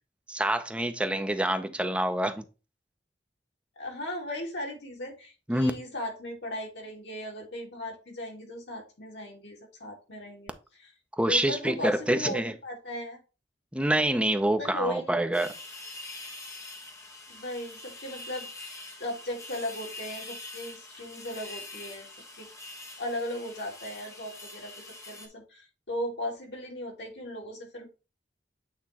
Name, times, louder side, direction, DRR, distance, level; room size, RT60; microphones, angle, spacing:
voice 1, 0.3-2.4 5.5-5.7 11.2-12.5 13.7-15.5, right 1 dB, 5° right, 0.7 m, -26 dB
voice 2, 3.8-10.5 10.8-10.9 11.3-13.2 14.6-15.1 17.3-18.7 19.0-22.1 22.4-22.5 23.0-27.9, left 1 dB, 75° left, 2.5 m, -37 dB
sound 1, 15.3-25.3, left 2 dB, 20° left, 1.2 m, -44 dB
8.4 x 3.1 x 4.3 m
head